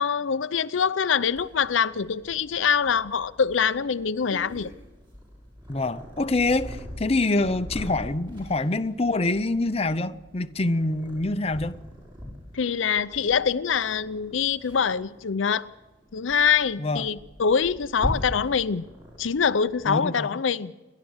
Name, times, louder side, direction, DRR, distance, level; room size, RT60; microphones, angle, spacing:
voice 1, 0.0-4.7 12.5-15.7 16.1-18.8 19.2-20.7, left 6 dB, 85° left, 0.6 m, -24 dB
Purr, 1.3-20.0, equal, 25° right, 7.3 m, -41 dB
voice 2, 5.7-11.8 16.8-17.1 19.9-20.4, left 2 dB, 30° left, 0.7 m, -25 dB
29.0 x 11.5 x 8.0 m
head